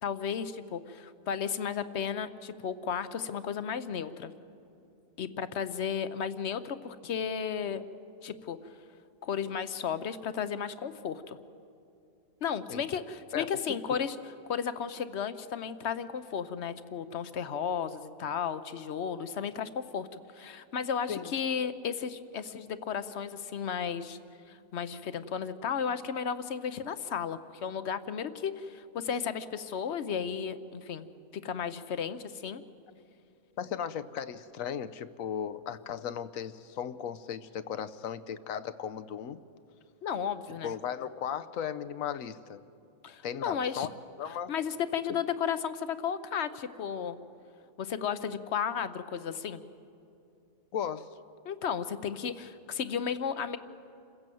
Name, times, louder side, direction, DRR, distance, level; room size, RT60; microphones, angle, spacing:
voice 1, 0.0-4.3 5.2-7.8 8.2-8.6 9.2-11.4 12.4-14.2 14.5-24.2 24.5-31.1 31.3-32.6 40.0-40.7 43.0-43.9 44.5-47.2 47.8-49.6 51.4-53.6, left 7 dB, 55° left, 13 dB, 1.0 m, -34 dB
voice 2, 13.3-14.0 21.1-21.3 33.6-39.4 40.6-42.6 43.2-43.9 44.2-44.5 45.1-45.2 50.7-51.1, left 8 dB, 75° left, 12 dB, 1.1 m, -36 dB
27.5 x 16.0 x 7.7 m, 2.7 s
omnidirectional pair, 1.5 m